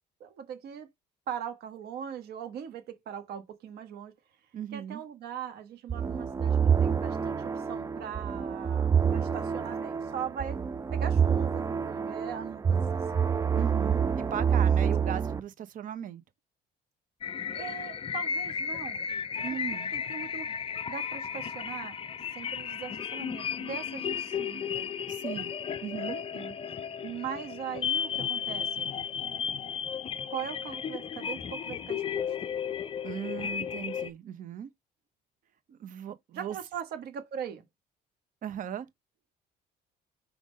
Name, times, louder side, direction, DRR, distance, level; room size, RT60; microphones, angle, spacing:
voice 1, 0.2-0.9 1.3-4.1 4.7-10.6 10.9-13.2 17.5-19.1 19.9-20.5 20.9-21.9 22.3-24.9 25.9-26.0 26.3-26.5 27.0-28.9 30.3-32.3 36.3-37.6, right 8 dB, 70° right, 1.4 m, -40 dB
voice 2, 4.5-5.0 13.5-16.2 19.4-19.9 25.1-25.5 25.8-26.2 33.0-34.7 35.7-36.6 38.4-38.9, right 9 dB, 50° right, 0.8 m, -37 dB
sound 1, 5.9-15.4, right 7 dB, 20° right, 0.4 m, -27 dB
sound 2, 17.2-34.1, left 7 dB, 35° left, 0.5 m, -34 dB
4.7 x 3.8 x 5.2 m
cardioid pair, 110°, 17 cm